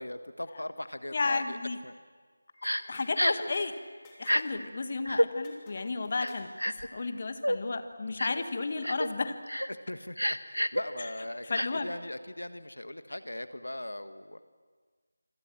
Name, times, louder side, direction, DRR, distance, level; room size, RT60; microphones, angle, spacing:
voice 1, 0.0-1.6 1.8-1.9 8.1-8.2 9.7-14.4, left 1 dB, 65° left, 11 dB, 1.4 m, -40 dB
voice 2, 1.1-1.8 2.9-3.7 4.2-9.3 11.0-11.1 11.5-11.9, left 3 dB, 35° left, 9 dB, 1.6 m, -33 dB
Crying sobbing, 2.6-2.8 3.2-3.5 4.2-4.4 5.1-5.3 6.2-6.9 7.4-7.6 8.2-8.4 8.8-9.1 9.5-9.7 10.2-10.8 11.5-11.7, equal, 90° left, 1.7 m, -28 dB
sound 1, 2.6-3.7 4.0-4.6 4.9-5.0 5.4-6.6, left 2 dB, 10° left, 3.1 m, -55 dB
27.0 x 26.0 x 7.6 m, 1.5 s
figure-of-eight pair, 165°, 0 cm